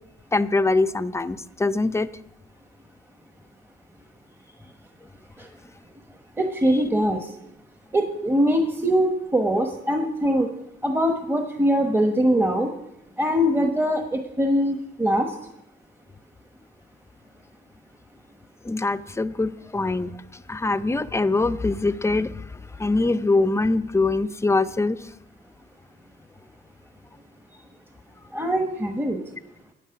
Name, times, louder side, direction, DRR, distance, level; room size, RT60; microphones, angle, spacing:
voice 1, 0.3-2.1 18.6-22.5 22.8-25.0, left 3 dB, 15° left, 14 dB, 0.6 m, -23 dB
voice 2, 6.4-7.3 7.9-10.5 10.8-12.7 13.2-15.3 28.3-29.2, equal, 10° right, 4 dB, 1.1 m, -22 dB
11.5 x 9.2 x 5.9 m, 0.87 s
cardioid pair, 90°, 20 cm